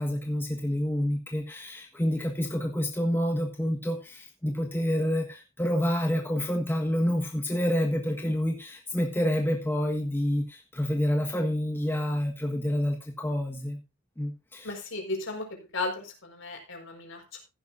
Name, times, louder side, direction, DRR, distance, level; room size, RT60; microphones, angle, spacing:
voice 1, 0.0-13.8 14.2-14.7, equal, 10° left, 2 dB, 1.4 m, -28 dB
voice 2, 14.6-15.5 15.7-17.4, left 3 dB, 60° left, 3 dB, 4.9 m, -35 dB
15.0 x 11.5 x 2.6 m, 0.26 s
head